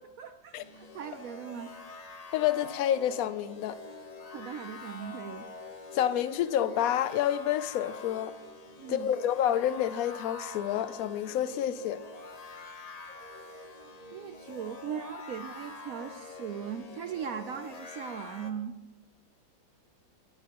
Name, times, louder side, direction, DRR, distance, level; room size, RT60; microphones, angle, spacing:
voice 1, 0.2-1.7 4.3-5.5 8.8-9.1 14.1-18.8, right 8 dB, 75° right, 0.7 m, -39 dB
sound 1, 0.5-18.5, left 3 dB, 45° left, 0.5 m, -46 dB
voice 2, 2.3-3.8 5.9-8.3 8.9-12.0, left 11 dB, 80° left, 0.7 m, -28 dB
21.5 x 10.5 x 2.9 m
omnidirectional pair, 2.1 m